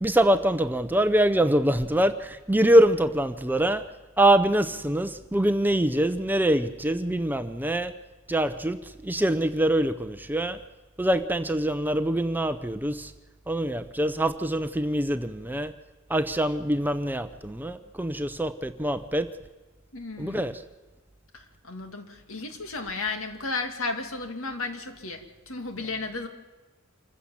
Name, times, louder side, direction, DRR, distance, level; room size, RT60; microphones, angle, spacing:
voice 1, 0.0-2.1 2.5-3.8 4.2-7.9 8.3-8.8 9.1-10.6 11.0-12.9 13.5-15.7 16.1-19.3 20.2-20.5, right 1 dB, 10° right, 0.7 m, -24 dB
voice 2, 19.9-20.6 21.3-26.3, left 3 dB, 70° left, 2.4 m, -34 dB
26.5 x 15.0 x 7.3 m
head